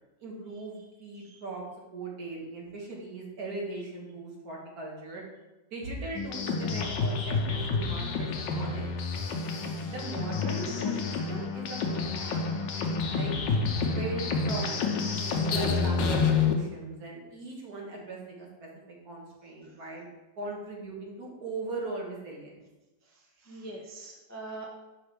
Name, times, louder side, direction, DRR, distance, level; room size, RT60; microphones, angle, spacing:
voice 1, 0.2-1.6 1.9-5.2 5.7-8.9 9.9-12.5 13.1-13.3 13.8-14.8 15.2-20.1 20.4-22.6, right 2 dB, 60° right, -2 dB, 1.9 m, -39 dB
sound 1, 6.1-16.5, left 4 dB, 85° left, 1.5 m, -29 dB
voice 2, 23.1-24.7, right 2 dB, 25° left, -2 dB, 0.3 m, -44 dB
6.2 x 5.9 x 3.4 m, 1.0 s
omnidirectional pair, 1.9 m